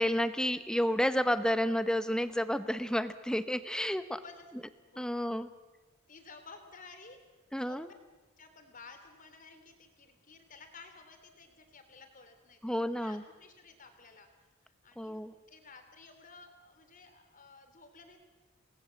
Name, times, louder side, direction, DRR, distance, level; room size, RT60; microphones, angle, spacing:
voice 1, 0.0-4.2 5.0-5.5 7.5-7.9 12.6-13.2 15.0-15.3, equal, 5° left, 12 dB, 0.9 m, -30 dB
voice 2, 4.9-5.2 6.1-7.8 8.4-14.3 14.6-18.2, left 4 dB, 40° left, 6 dB, 3.4 m, -54 dB
28.0 x 20.0 x 7.7 m, 1.2 s
head